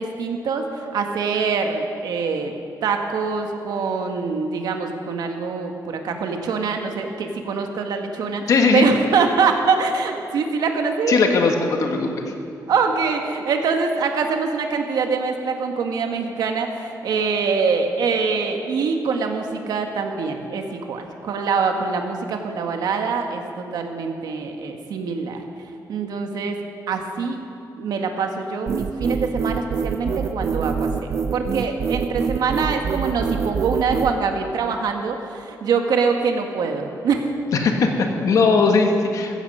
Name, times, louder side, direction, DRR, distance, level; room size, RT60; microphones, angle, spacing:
voice 1, 0.0-2.5 2.8-8.4 8.7-11.2 12.7-25.4 25.9-26.6 26.9-27.4 27.8-37.2, right 5 dB, 75° right, 4 dB, 1.6 m, -24 dB
voice 2, 8.5-8.8 11.1-12.3 37.6-39.4, left 4 dB, 55° left, 3 dB, 1.5 m, -19 dB
sound 1, 28.7-34.1, right 6 dB, 45° right, 0.7 m, -25 dB
15.0 x 14.5 x 5.5 m, 2.6 s
wide cardioid pair, 170°, 7 cm